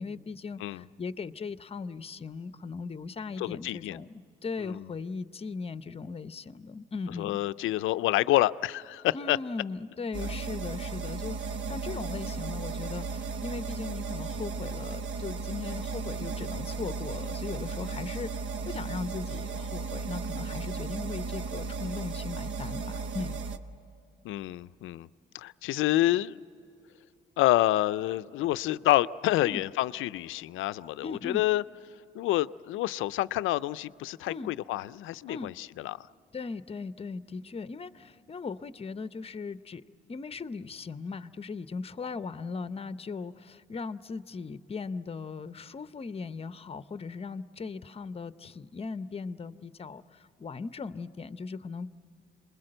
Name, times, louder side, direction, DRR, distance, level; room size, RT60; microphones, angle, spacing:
voice 1, 0.0-7.4 9.1-23.4 29.4-29.6 31.0-31.4 34.3-34.5 35.3-35.5 36.3-39.8 40.1-51.9, left 4 dB, 30° left, 13 dB, 0.7 m, -38 dB
voice 2, 3.4-4.0 4.6-4.9 7.2-9.4 24.2-25.1 25.3-26.4 27.4-31.6 32.1-36.0, left 15 dB, 85° left, 16 dB, 0.5 m, -28 dB
sound 1, 10.1-23.6, right 4 dB, 70° right, 1.0 m, -35 dB
27.5 x 21.0 x 7.8 m, 2.7 s
cardioid pair, 90°, 20 cm